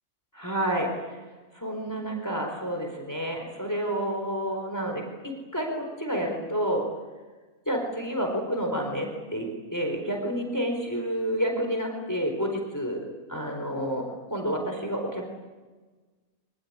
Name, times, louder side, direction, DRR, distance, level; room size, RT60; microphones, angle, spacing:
voice 1, 0.3-0.9 1.5-6.9 7.7-13.0 13.3-15.3, equal, 15° left, 2 dB, 4.5 m, -29 dB
25.0 x 19.5 x 9.9 m, 1.3 s
omnidirectional pair, 1.4 m